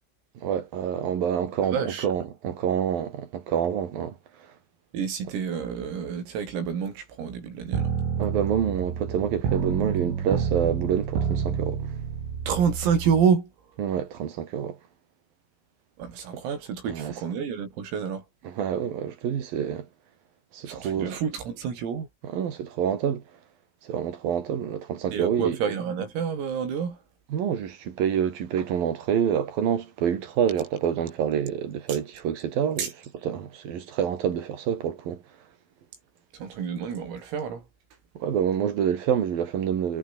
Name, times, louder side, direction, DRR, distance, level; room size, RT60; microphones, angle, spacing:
voice 1, 0.4-4.5 8.2-11.9 13.8-14.8 16.9-17.1 18.4-19.9 20.5-21.1 22.2-23.2 23.8-25.6 27.3-32.9 33.2-35.2 38.2-40.0, right 8 dB, 50° right, 3.7 m, -27 dB
voice 2, 1.7-2.1 4.9-7.9 12.5-13.5 16.0-18.2 20.7-22.1 25.1-27.0 32.8-32.9 36.3-37.7, right 7 dB, 90° right, 8.2 m, -28 dB
sound 1, 7.7-13.2, right 7 dB, 70° right, 7.3 m, -29 dB
omnidirectional pair, 5.9 m